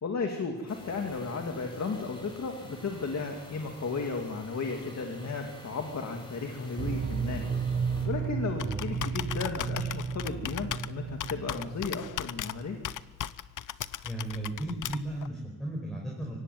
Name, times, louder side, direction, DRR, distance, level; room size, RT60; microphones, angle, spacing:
voice 1, 0.0-7.4 8.0-12.8, left 4 dB, 60° left, 3 dB, 2.4 m, -34 dB
sound 1, 0.7-8.1, equal, 15° left, 4.5 m, -48 dB
sound 2, 6.8-12.2 12.4-12.6, right 5 dB, 45° right, 1.6 m, -33 dB
Computer keyboard, 8.0-15.3, left 10 dB, 85° left, 0.7 m, -38 dB
voice 2, 14.0-16.4, right 1 dB, ahead, -2 dB, 5.1 m, -35 dB
24.0 x 18.0 x 9.3 m, 1.2 s
wide cardioid pair, 150°, 30 cm